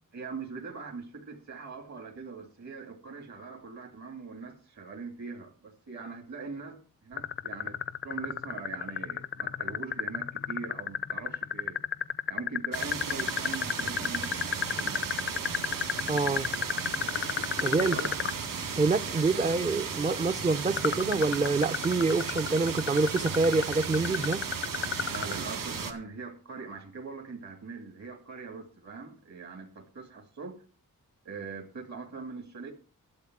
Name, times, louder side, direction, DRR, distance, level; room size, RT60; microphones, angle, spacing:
voice 1, 0.1-7.8 8.0-11.8 12.3-15.2 17.9-18.2 25.0-30.5 31.2-32.7, right 4 dB, 55° right, 2.2 m, -42 dB
sound 1, 7.2-18.3 20.8-25.4, left 8 dB, 40° left, 0.5 m, -31 dB
sound 2, 12.7-25.9, right 6 dB, 80° right, 1.9 m, -35 dB
voice 2, 16.1-16.5 17.6-18.0 18.7-24.5, right 3 dB, 25° right, 0.5 m, -26 dB
12.0 x 7.7 x 5.9 m
wide cardioid pair, 145°, 33 cm